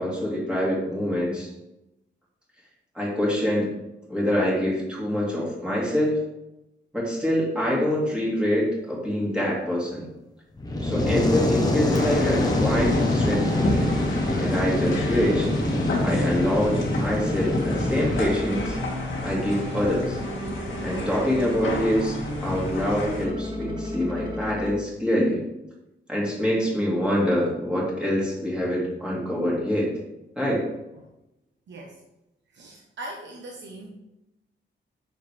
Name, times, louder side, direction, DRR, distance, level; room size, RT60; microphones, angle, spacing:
voice 1, 0.0-1.5 2.9-3.7 4.1-6.2 6.9-10.1 10.8-13.9 14.4-15.5 16.0-18.8 19.2-20.2 20.8-25.4 26.1-29.9 30.4-30.7, equal, 5° right, -5 dB, 2.5 m, -25 dB
Fire, 10.6-18.2, left 2 dB, 20° left, 1.1 m, -25 dB
sound 1, 11.9-23.2, left 2 dB, 75° left, 2.1 m, -31 dB
sound 2, 12.7-24.7, equal, 25° right, 1.6 m, -34 dB
voice 2, 32.5-33.9, right 2 dB, 65° right, -1 dB, 1.2 m, -40 dB
9.3 x 6.8 x 3.5 m, 0.93 s
wide cardioid pair, 155°, 20 cm